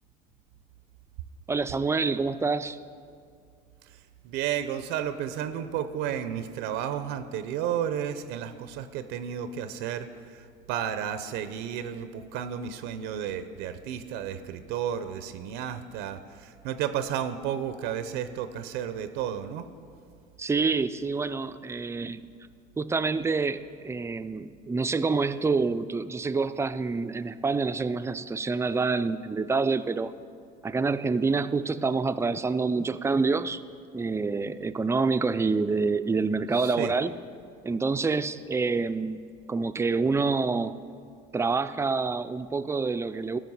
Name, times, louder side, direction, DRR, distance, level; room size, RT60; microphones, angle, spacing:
voice 1, 1.5-2.8 20.4-22.2 22.8-30.1 30.6-33.6 33.9-37.1 37.6-39.2 39.5-40.7 41.3-43.4, right 4 dB, 15° right, 12 dB, 0.4 m, -27 dB
voice 2, 3.9-19.7 36.5-36.9, right 9 dB, 80° right, 11 dB, 0.6 m, -32 dB
14.0 x 5.8 x 5.5 m, 2.2 s
supercardioid pair, 95°, 19 cm